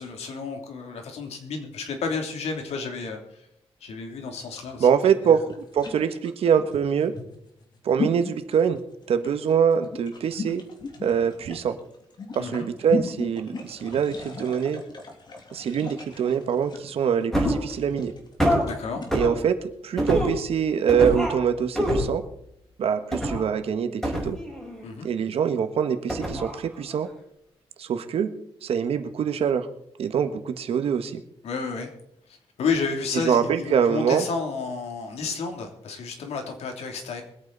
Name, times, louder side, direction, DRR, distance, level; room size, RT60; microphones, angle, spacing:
voice 1, 0.0-3.5 3.8-4.9 5.2-5.4 12.4-12.7 18.6-19.0 24.8-25.1 31.4-31.9 32.6-37.2, left 4 dB, 90° left, 3 dB, 3.0 m, -31 dB
sound 1, 4.5-19.2, left 4 dB, 45° left, 3.1 m, -36 dB
voice 2, 4.8-7.1 7.8-8.8 9.1-10.6 11.0-11.8 12.3-14.8 15.5-18.1 19.1-22.2 22.8-24.4 25.0-27.1 27.8-28.3 28.6-29.7 30.0-31.2 33.2-34.2, right 7 dB, 70° right, 9 dB, 1.4 m, -24 dB
sound 2, 17.3-17.7 18.4-18.6 19.1-19.4 20.0-20.4 20.9-21.4 21.7-22.2 23.1-23.4 24.0-24.8 26.1-26.6 26.9-27.0, equal, 5° left, 5.3 m, -25 dB
23.0 x 9.0 x 4.0 m, 0.76 s
wide cardioid pair, 140°, 10 cm